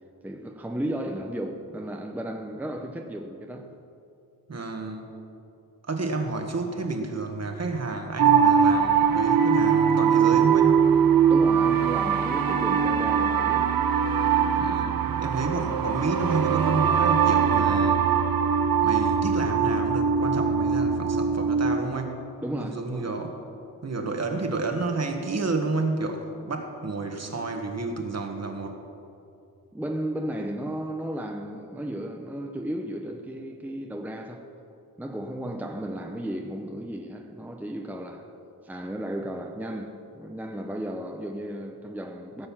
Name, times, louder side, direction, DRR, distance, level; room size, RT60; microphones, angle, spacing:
voice 1, 0.2-3.7 11.3-13.8 22.4-23.1 29.7-34.5 35.0-38.3 38.6-42.5, right 1 dB, 5° right, 0.8 m, -34 dB
voice 2, 4.5-5.1 5.9-10.8 14.6-18.0 18.8-22.2 22.6-23.3 23.8-28.8, right 3 dB, 45° right, 1.6 m, -30 dB
sound 1, 8.2-21.8, right 7 dB, 65° right, 0.9 m, -22 dB
17.5 x 6.8 x 7.4 m
wide cardioid pair, 90°, 37 cm